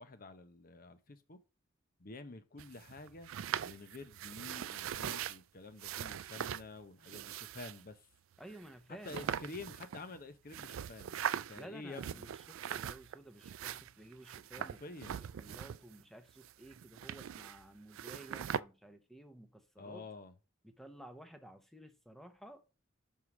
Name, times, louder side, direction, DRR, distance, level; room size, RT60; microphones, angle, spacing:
voice 1, 0.0-1.4 2.0-3.3 3.6-8.1 9.0-12.3 14.6-15.2 19.8-20.3, left 3 dB, 45° left, 0.8 m, -49 dB
sound 1, 2.6-5.4 5.8-6.7 7.0-7.8 8.5-8.6 9.0-10.2 10.5-11.6 11.9-13.2 13.4-16.0 16.3-17.7 17.9-18.6, right 9 dB, 85° right, 0.3 m, -41 dB
voice 2, 8.4-9.3 11.6-14.8 15.2-20.0 20.6-22.7, right 1 dB, ahead, 0.9 m, -54 dB
5.6 x 4.8 x 6.0 m
head